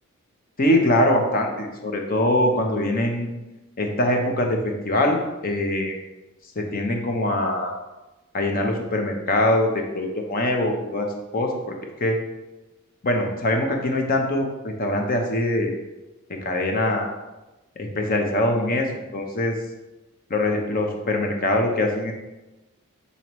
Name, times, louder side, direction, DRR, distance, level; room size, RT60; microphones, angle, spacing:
voice 1, 0.6-3.3 3.8-6.0 6.6-7.7 8.3-11.1 11.3-11.7 12.0-12.2 13.0-15.7 16.4-17.1 17.8-19.5 20.3-22.1, left 1 dB, 40° left, 2 dB, 0.8 m, -23 dB
7.6 x 4.1 x 3.1 m, 1.1 s
head